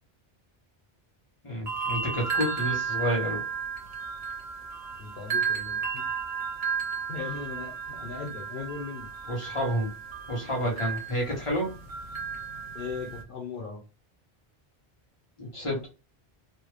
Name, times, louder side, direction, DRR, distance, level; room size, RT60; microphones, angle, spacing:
voice 1, 1.4-3.4 9.3-9.9 10.3-11.7 15.4-15.9, equal, 30° left, -3 dB, 1.5 m, -29 dB
sound 1, 1.7-13.2, right 6 dB, 75° right, 1.1 m, -33 dB
voice 2, 5.0-6.0 7.1-9.1 10.6-10.8 12.7-13.8, left 5 dB, 60° left, -2 dB, 0.9 m, -38 dB
3.3 x 2.3 x 3.2 m, 0.31 s
omnidirectional pair, 1.1 m